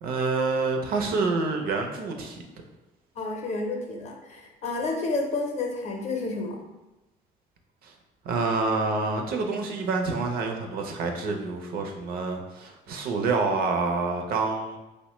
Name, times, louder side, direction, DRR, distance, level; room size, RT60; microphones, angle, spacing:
voice 1, 0.0-2.4 7.8-7.9 8.2-14.8, right 4 dB, 60° right, 3 dB, 0.5 m, -27 dB
voice 2, 3.2-6.6, left 3 dB, 40° left, 2 dB, 0.6 m, -30 dB
3.0 x 2.1 x 3.0 m, 1.0 s
cardioid pair, 110°, 17 cm